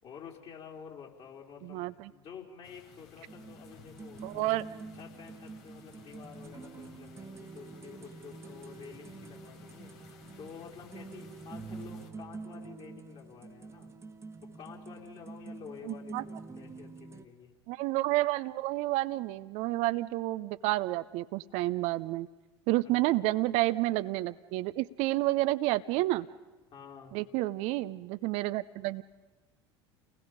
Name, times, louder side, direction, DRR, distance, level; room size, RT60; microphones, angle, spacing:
voice 1, 0.0-4.7 4.9-13.9 14.5-17.5 22.8-23.2 26.7-27.2, left 7 dB, 45° left, 0 dB, 4.3 m, -50 dB
voice 2, 1.6-2.1 4.2-4.6 15.8-16.2 17.7-22.3 22.7-26.3 27.1-29.0, right 18 dB, 55° right, 13 dB, 0.7 m, -30 dB
sound 1, 2.6-12.1, left 6 dB, 60° left, 2.7 m, -56 dB
sound 2, 3.3-17.3, right 4 dB, 20° right, 1.5 m, -47 dB
30.0 x 20.0 x 5.2 m, 1.1 s
figure-of-eight pair, 75°, 14 cm